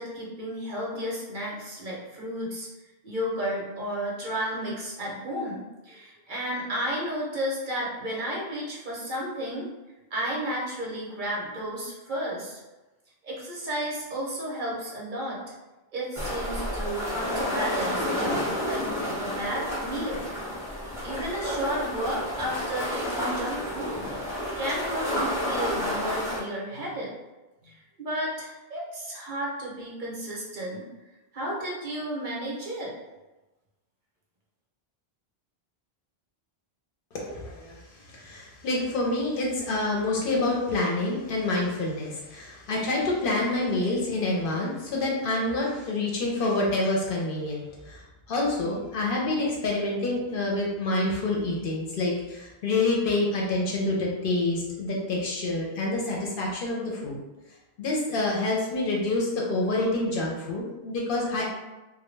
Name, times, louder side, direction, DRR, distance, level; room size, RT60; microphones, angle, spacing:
voice 1, 0.0-2.7 3.0-9.7 10.1-12.6 13.2-15.4 15.9-20.3 21.0-23.9 24.6-27.1 27.6-30.8 31.3-32.9, equal, 55° right, -4 dB, 0.7 m, -33 dB
sound 1, 16.1-26.4, equal, 5° right, 0.6 m, -30 dB
voice 2, 37.1-57.2 57.8-61.5, left 2 dB, 65° left, -2 dB, 0.7 m, -27 dB
2.1 x 2.0 x 3.0 m, 1.1 s
omnidirectional pair, 1.0 m